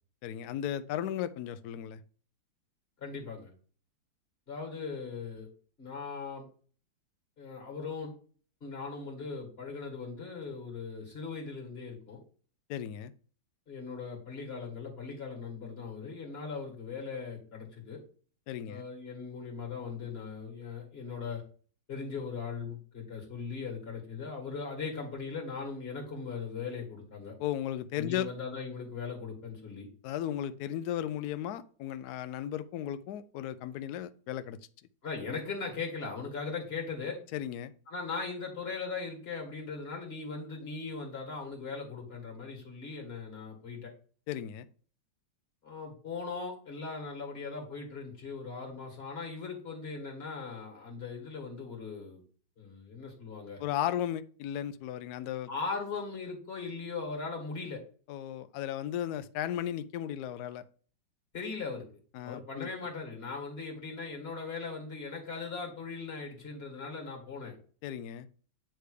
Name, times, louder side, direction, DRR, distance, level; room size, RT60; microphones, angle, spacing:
voice 1, 0.2-2.0 12.7-13.1 18.5-18.8 27.4-28.3 30.0-34.6 37.3-37.7 44.3-44.7 53.6-55.5 58.1-60.6 62.1-62.7 67.8-68.3, left 11 dB, 70° left, 12 dB, 0.9 m, -35 dB
voice 2, 3.0-3.5 4.5-5.5 5.8-6.5 7.4-8.1 8.6-12.2 13.7-18.0 18.7-21.4 21.9-27.3 28.0-29.9 35.0-37.2 37.9-43.9 45.6-52.2 52.6-53.6 55.5-57.8 61.3-61.9 62.2-67.5, left 4 dB, 30° left, -1 dB, 2.3 m, -39 dB
9.2 x 3.3 x 4.9 m, 0.42 s
omnidirectional pair, 2.1 m